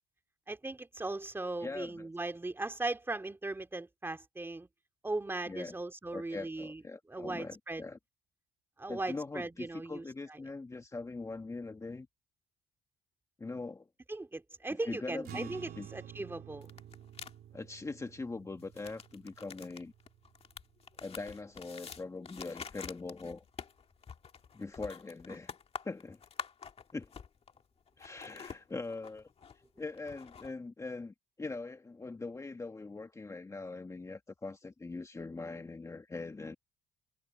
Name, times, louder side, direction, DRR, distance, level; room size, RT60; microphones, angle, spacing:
voice 1, 0.5-4.7 5.0-6.8 7.1-7.8 8.8-10.0 14.1-16.7, right 2 dB, 15° right, 2.4 m, -38 dB
voice 2, 1.6-2.1 5.5-5.7 6.1-8.0 8.9-12.1 13.4-13.9 14.8-15.9 17.5-19.9 21.0-23.4 24.5-25.5 25.8-26.2 26.9-27.1 28.0-29.3 29.8-36.6, left 3 dB, 20° left, 1.6 m, -42 dB
sound 1, 15.2-21.9, right 11 dB, 65° right, 3.4 m, -51 dB
sound 2, 16.6-17.3 18.6-27.6 27.9-30.5, left 6 dB, 35° left, 2.0 m, -47 dB
cardioid pair, 110°, 17 cm